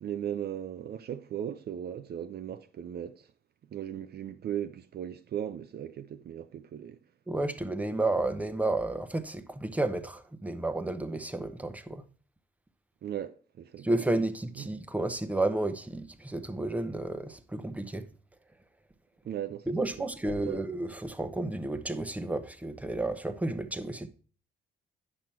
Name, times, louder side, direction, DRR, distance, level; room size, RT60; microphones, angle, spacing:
voice 1, 0.0-3.3 3.7-7.0 13.0-13.9 14.6-14.7 19.3-20.7, right 10 dB, 55° right, 0.5 m, -37 dB
voice 2, 7.3-12.0 13.8-18.1 19.7-24.1, right 2 dB, 5° right, 0.9 m, -31 dB
8.8 x 6.1 x 4.4 m
cardioid pair, 90°, 20 cm